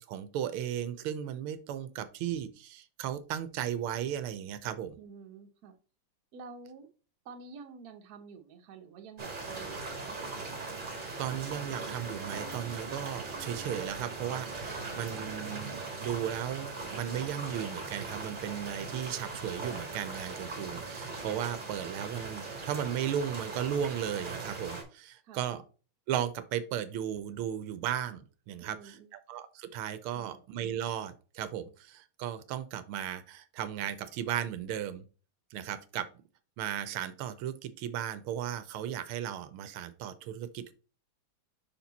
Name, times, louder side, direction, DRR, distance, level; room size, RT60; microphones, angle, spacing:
voice 1, 0.0-5.0 11.2-15.7 16.0-25.6 26.1-35.0 35.5-36.1 36.6-40.7, right 10 dB, 85° right, 12 dB, 1.5 m, -36 dB
voice 2, 5.0-5.8 6.3-6.9 7.2-10.2 25.2-25.5 28.6-29.1 30.1-30.4, right 5 dB, 55° right, 5 dB, 1.1 m, -49 dB
sound 1, 9.2-24.8, right 3 dB, 25° right, 1.4 m, -40 dB
5.7 x 4.4 x 4.0 m, 0.36 s
omnidirectional pair, 2.4 m